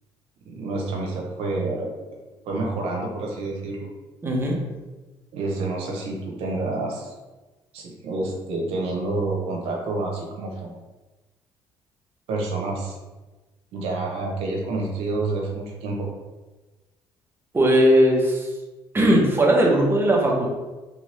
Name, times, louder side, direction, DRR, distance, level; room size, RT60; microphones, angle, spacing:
voice 1, 0.4-1.9 2.4-3.9 5.3-7.1 7.7-10.7 12.3-13.0 13.7-16.1, right 2 dB, 75° right, -1 dB, 0.9 m, -28 dB
voice 2, 4.2-4.6 17.5-18.5 18.9-20.5, right 1 dB, 20° right, -2 dB, 1.0 m, -18 dB
3.3 x 2.6 x 3.3 m, 1.2 s
supercardioid pair, 75°, 10 cm